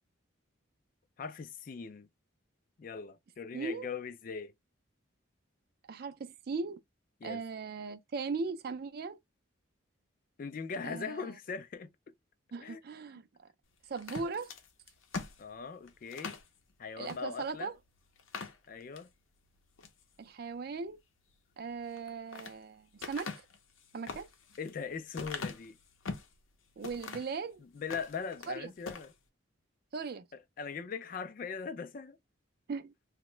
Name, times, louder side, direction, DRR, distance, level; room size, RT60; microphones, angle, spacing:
voice 1, 1.2-2.1 2.8-4.5 7.2-7.4 10.4-11.9 12.6-12.8 15.4-16.4 16.8-17.7 18.7-19.1 24.6-25.8 27.6-29.1 30.3-32.2, left 5 dB, 45° left, 0.3 m, -40 dB
voice 2, 3.5-3.9 5.9-6.8 7.2-9.2 10.8-11.3 12.5-13.3 13.9-14.5 17.0-17.8 20.2-21.0 21.6-23.3 23.9-24.3 26.8-27.6 28.5-28.7 29.9-30.3 32.7-32.9, right 4 dB, 50° right, 0.4 m, -38 dB
sound 1, 14.0-16.5 17.0-17.2 17.6-17.7 18.2-19.1 19.6-20.0 21.8-22.6 23.0-26.4 26.8-27.4 27.8-28.5 28.8-29.1, left 4 dB, 80° left, 0.6 m, -42 dB
2.8 x 2.1 x 3.1 m
head